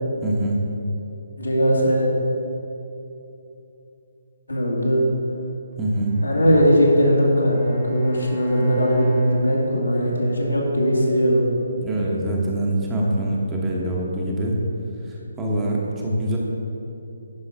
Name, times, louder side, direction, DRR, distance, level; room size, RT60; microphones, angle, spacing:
voice 1, 0.2-0.6 5.8-6.2 11.8-14.6 15.4-16.4, right 1 dB, 10° right, -3 dB, 1.2 m, -24 dB
voice 2, 1.4-2.1 4.5-5.0 6.2-11.4, equal, 80° left, -3 dB, 2.1 m, -19 dB
Bowed string instrument, 5.9-10.3, right 4 dB, 20° left, 1.2 m, -31 dB
10.5 x 5.3 x 5.0 m, 2.9 s
figure-of-eight pair, 140°, 0 cm